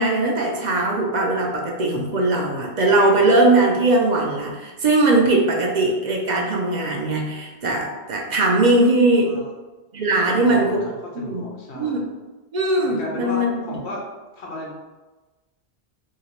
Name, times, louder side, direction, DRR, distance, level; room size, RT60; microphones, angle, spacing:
voice 1, 0.0-9.3 9.9-10.8 11.2-11.4 11.7-12.0 12.5-13.8, right 2 dB, 55° right, 0 dB, 0.5 m, -20 dB
voice 2, 10.2-12.1 12.8-14.0 14.3-14.8, left 2 dB, 80° left, -2 dB, 1.0 m, -33 dB
2.8 x 2.8 x 3.0 m, 1.2 s
omnidirectional pair, 1.1 m